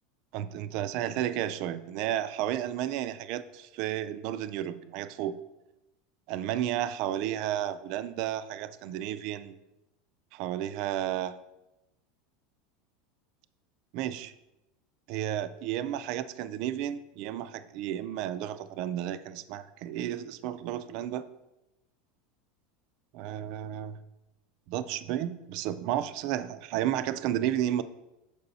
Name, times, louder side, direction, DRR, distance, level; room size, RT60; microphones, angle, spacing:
voice 1, 0.3-5.4 6.3-9.6 10.3-11.4 13.9-14.3 15.1-21.3 23.1-24.0 24.7-27.8, right 11 dB, 50° right, 13 dB, 0.3 m, -32 dB
6.7 x 4.8 x 4.0 m, 0.95 s
supercardioid pair, 165°, 0 cm